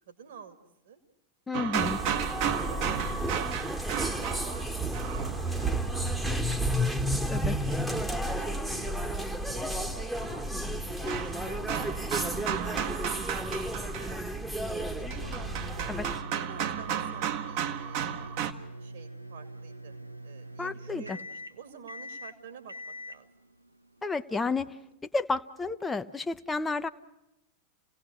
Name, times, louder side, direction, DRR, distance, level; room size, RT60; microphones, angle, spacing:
voice 1, 0.1-0.6 0.8-1.0 1.5-3.5 4.0-7.0 7.6-10.5 11.0-14.2 14.6-15.9 16.3-18.3 18.8-20.0 20.2-23.3, right 6 dB, 60° right, 8 dB, 2.4 m, -50 dB
voice 2, 1.5-2.0 7.3-7.6 15.9-16.1 20.6-21.0 24.0-24.7 25.1-26.9, left 3 dB, 10° left, 9 dB, 0.7 m, -31 dB
sound 1, 1.5-5.8 8.3-8.4 10.1-18.5, right 9 dB, 45° right, 1.2 m, -34 dB
sound 2, 1.7-16.2, right 1 dB, 5° right, 1.2 m, -32 dB
sound 3, 14.6-24.9, right 1 dB, 85° right, 0.7 m, -44 dB
28.0 x 17.5 x 6.4 m, 0.91 s
figure-of-eight pair, 90°, 0 cm